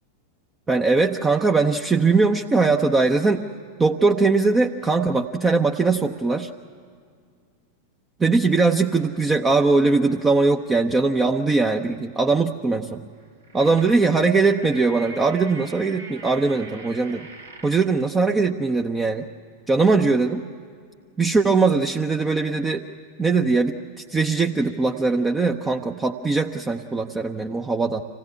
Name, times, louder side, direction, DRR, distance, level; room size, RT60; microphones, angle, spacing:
voice 1, 0.7-3.4 3.8-6.5 8.2-13.0 13.5-17.3 17.6-19.3 19.7-20.4 21.2-22.8 23.2-23.8 24.1-28.0, right 3 dB, 15° right, 4 dB, 0.7 m, -20 dB
sound 1, 13.2-18.0, right 2 dB, 75° right, 2.2 m, -42 dB
26.0 x 17.0 x 9.6 m, 2.1 s
figure-of-eight pair, 90°, 0 cm